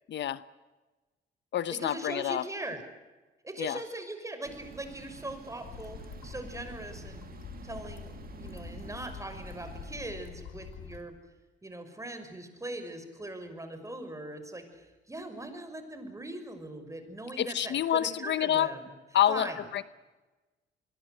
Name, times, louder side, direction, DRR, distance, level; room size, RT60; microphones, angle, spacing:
voice 1, 0.1-0.4 1.5-2.4 3.6-3.8 17.4-18.7 19.1-19.5 19.7-19.8, left 11 dB, 65° left, 15 dB, 1.0 m, -27 dB
voice 2, 1.8-2.8 3.4-6.0 6.2-7.2 7.6-11.1 11.6-18.9 19.3-19.6, right 1 dB, 15° right, 8 dB, 6.1 m, -40 dB
sound 1, 4.4-10.1, right 6 dB, 50° right, 2.0 m, -49 dB
sound 2, 5.6-11.0, left 7 dB, 90° left, 3.9 m, -45 dB
27.5 x 22.0 x 8.0 m, 1.2 s
cardioid pair, 90°, 20 cm